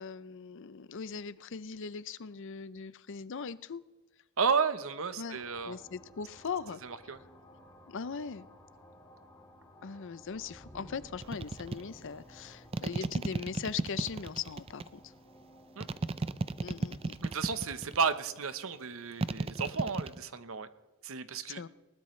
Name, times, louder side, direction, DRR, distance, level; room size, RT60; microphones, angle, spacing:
voice 1, 0.0-3.8 5.2-5.4 5.7-6.8 7.1-7.2 7.9-8.5 9.8-15.0 16.6-17.2 21.5-21.7, left 6 dB, 55° left, 16 dB, 0.5 m, -40 dB
voice 2, 4.4-5.8 6.8-7.2 15.8-15.9 17.2-20.7 21.0-21.6, right 5 dB, 65° right, 12 dB, 0.9 m, -32 dB
sound 1, 5.3-19.4, equal, 15° left, 2.0 m, -56 dB
sound 2, 11.2-11.8 12.7-14.9 15.8-18.1 19.2-20.2, right 2 dB, 25° right, 0.4 m, -33 dB
20.5 x 19.5 x 3.2 m, 1.1 s
head